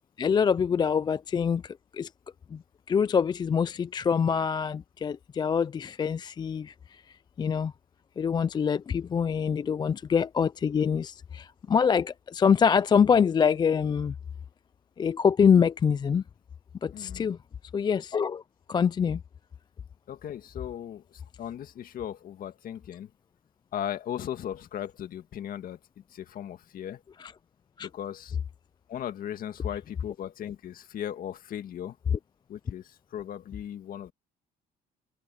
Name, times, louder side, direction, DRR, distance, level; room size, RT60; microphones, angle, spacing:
voice 1, 0.2-2.1 2.5-2.6 2.9-7.0 7.4-7.7 8.2-14.1 15.0-16.2 16.8-17.4 17.7-18.4 18.7-19.2 27.2-27.3 27.8-27.9, left 6 dB, 25° left, 0.3 m, -25 dB
voice 2, 16.9-17.3 20.1-23.1 23.7-27.0 27.8-28.4 28.9-32.0 32.5-34.1, left 10 dB, 55° left, 1.9 m, -37 dB
cardioid pair, 110°, 17 cm